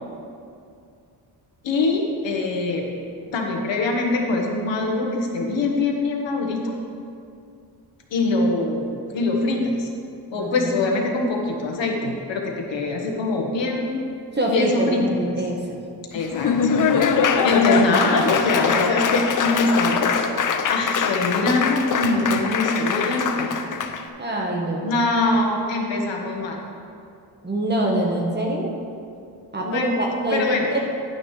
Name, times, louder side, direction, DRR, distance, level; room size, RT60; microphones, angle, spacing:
voice 1, 1.6-2.9 3.3-6.8 8.1-9.9 10.3-14.0 14.5-15.0 16.1-16.7 17.4-20.2 20.7-23.6 24.8-26.6 29.6-30.0 30.3-30.7, left 2 dB, 85° left, 1 dB, 1.4 m, -23 dB
voice 2, 10.3-10.8 14.3-15.8 24.2-24.9 27.4-28.7 29.5-30.8, right 1 dB, 25° right, -1 dB, 1.3 m, -24 dB
Laughter / Applause, 16.1-24.0, left 6 dB, 45° left, 0.6 m, -22 dB
11.0 x 9.4 x 3.3 m, 2.5 s
wide cardioid pair, 125°, 43 cm